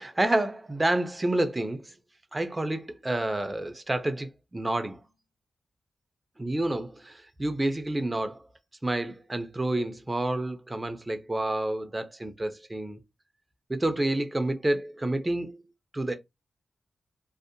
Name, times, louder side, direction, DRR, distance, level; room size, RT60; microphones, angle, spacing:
voice 1, 0.0-1.9 2.3-5.0 6.4-8.4 8.8-13.0 13.7-15.6 15.9-16.2, right 1 dB, 15° right, 0.3 m, -29 dB
2.6 x 2.0 x 2.5 m
wide cardioid pair, 130°, 0 cm